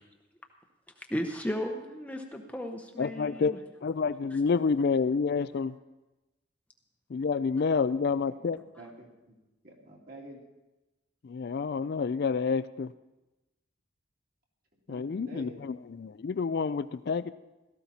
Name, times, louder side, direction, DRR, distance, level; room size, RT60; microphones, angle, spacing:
voice 1, 1.0-3.6 4.3-4.4, equal, 5° left, 3 dB, 0.8 m, -35 dB
voice 2, 3.0-3.6 3.8-5.7 7.1-8.6 11.2-12.9 14.9-17.3, left 5 dB, 50° left, 14 dB, 0.4 m, -28 dB
voice 3, 8.5-9.4 9.6-10.4 14.9-15.6, right 1 dB, 45° right, -1 dB, 2.7 m, -47 dB
17.0 x 14.0 x 4.2 m, 1.0 s
head